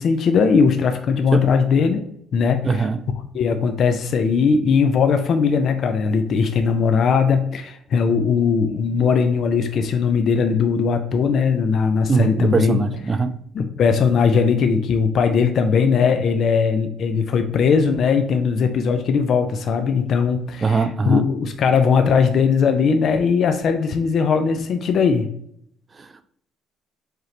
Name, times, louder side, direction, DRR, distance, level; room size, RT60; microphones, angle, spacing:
voice 1, 0.0-2.1 2.3-2.9 3.3-12.8 13.5-25.3, left 5 dB, 45° left, 7 dB, 0.4 m, -19 dB
voice 2, 2.6-3.0 12.1-13.3 20.6-21.3 26.0-26.2, right 4 dB, 20° right, 11 dB, 0.3 m, -21 dB
4.7 x 3.0 x 3.2 m, 0.70 s
cardioid pair, 155°, 0 cm